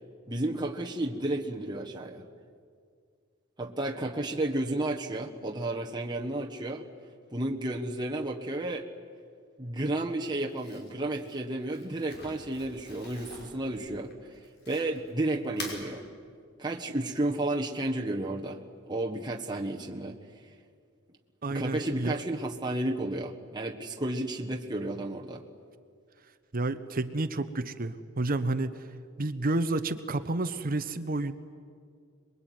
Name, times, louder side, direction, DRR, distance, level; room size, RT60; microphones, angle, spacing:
voice 1, 0.3-2.3 3.6-6.9 7.3-8.9 9.6-14.4 14.7-16.1 16.6-20.2 21.5-25.4, right 1 dB, 20° right, 0 dB, 1.5 m, -32 dB
Crumpling crinkling, 10.5-15.1 15.4-15.8, left 2 dB, 55° left, 5.4 m, -45 dB
voice 2, 21.4-22.2 26.5-28.9 29.2-31.3, right 2 dB, 45° right, 11 dB, 1.0 m, -30 dB
27.0 x 22.0 x 9.4 m, 2.2 s
head